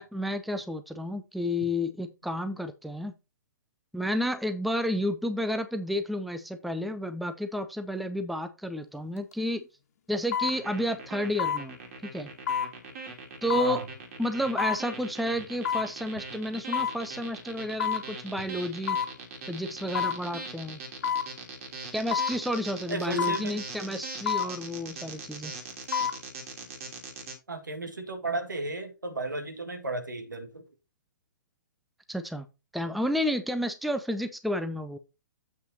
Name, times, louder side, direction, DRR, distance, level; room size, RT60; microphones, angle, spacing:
voice 1, 0.0-3.1 3.9-9.6 10.1-11.8 12.0-12.3 13.4-13.8 14.2-19.0 19.5-20.8 21.9-25.5 32.1-32.5 32.7-35.0, equal, ahead, 0.5 m, -31 dB
sound 1, 9.2-9.3 10.3-10.6 11.4-11.6 12.5-12.7 13.5-13.7 14.6-14.8 15.6-15.9 16.7-17.0 17.8-18.1 18.9-19.1 19.9-20.2 21.0-21.3 22.1-22.4 23.2-23.5 24.3-24.5 25.7-26.2 26.6-26.7, left 8 dB, 50° left, 1.5 m, -28 dB
sound 2, 10.4-27.3, right 4 dB, 45° right, 2.7 m, -41 dB
voice 2, 13.6-13.9 22.9-23.6 27.5-30.7, right 2 dB, 75° right, 1.8 m, -34 dB
7.8 x 5.5 x 4.1 m
figure-of-eight pair, 120°, 10 cm